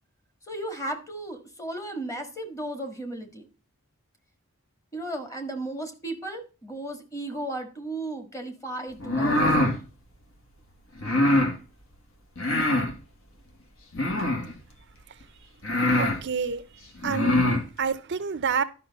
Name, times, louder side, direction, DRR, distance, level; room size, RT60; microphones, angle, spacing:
voice 1, 0.5-3.5 4.9-9.7, right 1 dB, 15° left, 1.5 m, -35 dB
sound 1, 9.0-9.8 11.0-11.5 12.4-12.9 13.9-14.5 15.2-15.3 15.6-16.2 17.0-17.6, left 1 dB, 60° left, 1.8 m, -23 dB
voice 2, 16.0-16.6 17.0-18.6, right 6 dB, 55° right, 0.5 m, -28 dB
11.5 x 5.8 x 4.0 m
head